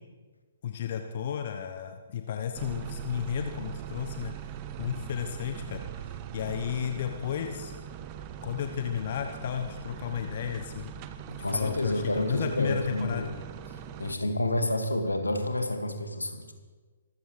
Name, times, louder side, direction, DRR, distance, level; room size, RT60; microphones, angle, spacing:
voice 1, 0.6-4.3 4.8-7.7 8.4-10.9 11.5-13.2, left 8 dB, 40° left, 5 dB, 1.0 m, -33 dB
sound 1, 2.6-14.2, right 9 dB, 25° right, 0.8 m, -41 dB
voice 2, 11.3-13.3 13.7-16.5, left 1 dB, 75° left, 5 dB, 2.0 m, -29 dB
25.0 x 14.5 x 3.3 m, 1.4 s
figure-of-eight pair, 130°, 0 cm